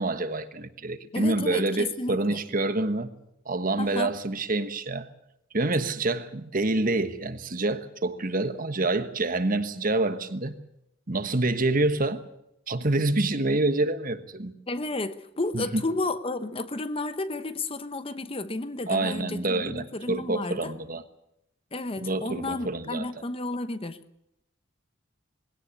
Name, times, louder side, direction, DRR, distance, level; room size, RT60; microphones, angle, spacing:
voice 1, 0.0-3.1 3.4-5.1 5.5-10.6 11.1-12.2 12.7-14.5 15.5-15.8 18.9-21.0 22.0-23.1, right 2 dB, 45° right, 1.3 m, -27 dB
voice 2, 1.1-2.4 3.8-4.1 14.7-20.7 21.7-24.0, left 2 dB, 30° left, 0.9 m, -32 dB
21.0 x 17.0 x 8.4 m
head